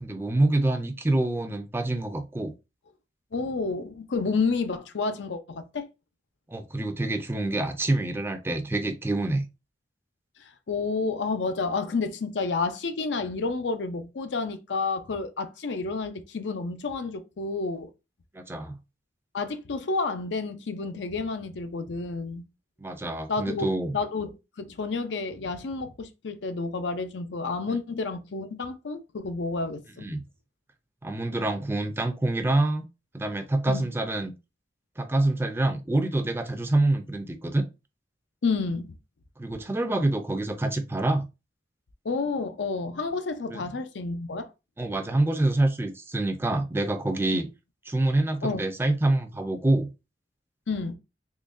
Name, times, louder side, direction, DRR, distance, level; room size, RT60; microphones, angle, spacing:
voice 1, 0.0-2.5 6.5-9.5 18.3-18.8 22.8-24.0 27.7-27.8 30.0-30.2 31.0-32.8 33.1-34.3 35.0-37.6 39.4-41.3 43.5-43.6 44.8-47.5 47.9-49.9, right 2 dB, 15° right, 0.4 m, -26 dB
voice 2, 3.3-5.9 10.4-17.9 19.3-22.4 23.3-23.7 23.9-24.3 24.6-30.1 33.7-33.8 38.4-38.9 42.0-44.5 48.4-48.6 50.7-50.9, left 4 dB, 85° left, 0.5 m, -30 dB
3.8 x 3.0 x 2.5 m
head